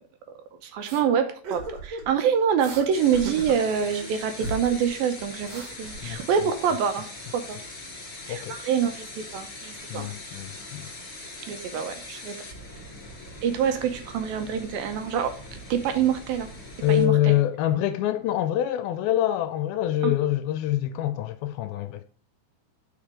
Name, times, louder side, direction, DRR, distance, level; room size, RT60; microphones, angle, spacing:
voice 1, 0.6-7.1 7.3-7.6 8.3-10.1 11.5-12.4 13.4-16.5 16.9-17.4, right 7 dB, 75° right, 2.4 m, -26 dB
sound 1, 0.8-1.0 1.4-2.1 2.6-2.9 3.1-4.1 4.4-4.9 5.2-6.6, right 2 dB, 55° right, 2.1 m, -37 dB
sound 2, 2.9-17.1, left 2 dB, 30° left, 2.5 m, -41 dB
voice 2, 9.9-10.9 16.8-22.0, left 12 dB, 80° left, 2.3 m, -25 dB
7.4 x 5.0 x 4.9 m
omnidirectional pair, 4.5 m